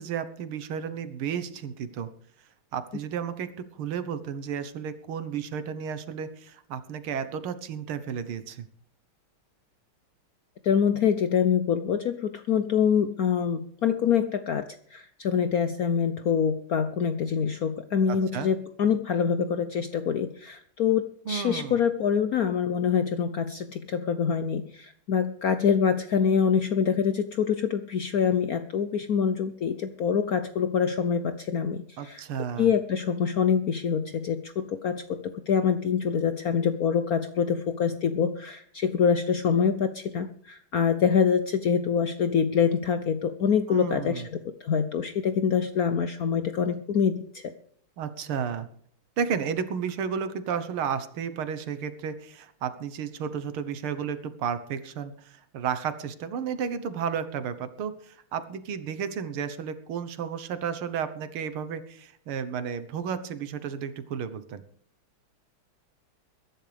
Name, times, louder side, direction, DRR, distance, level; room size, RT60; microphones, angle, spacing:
voice 1, 0.0-2.1 2.7-8.7 18.1-18.5 21.3-21.8 32.0-32.7 43.7-44.3 48.0-48.7 49.2-64.6, right 7 dB, 80° right, 12 dB, 2.0 m, -32 dB
voice 2, 10.6-32.2 32.6-44.2 44.6-47.5, left 7 dB, 70° left, 10 dB, 0.9 m, -25 dB
21.5 x 11.0 x 3.4 m, 0.63 s
omnidirectional pair, 2.3 m